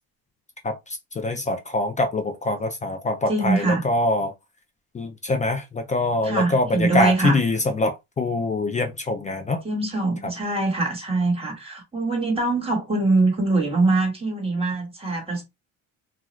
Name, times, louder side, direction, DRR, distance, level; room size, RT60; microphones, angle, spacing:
voice 1, 0.6-4.3 4.9-9.6, left 2 dB, 20° left, 0.3 m, -24 dB
voice 2, 3.3-3.8 6.2-7.4 9.6-15.4, right 2 dB, 15° right, 1.3 m, -23 dB
2.4 x 2.3 x 3.0 m
cardioid pair, 125°, 36 cm